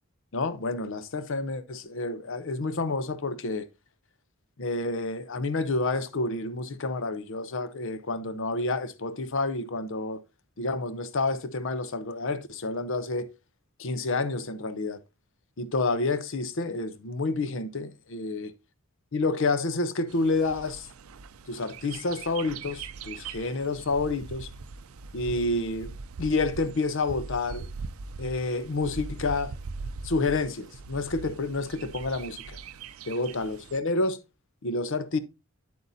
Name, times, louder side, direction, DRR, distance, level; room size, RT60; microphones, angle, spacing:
voice 1, 0.3-3.7 4.6-10.2 10.6-13.3 13.8-15.0 15.6-18.5 19.1-20.9 21.5-24.5 25.1-25.9 26.2-27.7 28.2-29.5 30.0-32.6 33.1-34.2 34.6-35.2, left 3 dB, 60° left, 0.7 m, -29 dB
Bird, 20.1-33.8, right 4 dB, 75° right, 0.5 m, -41 dB
8.5 x 8.1 x 2.7 m
head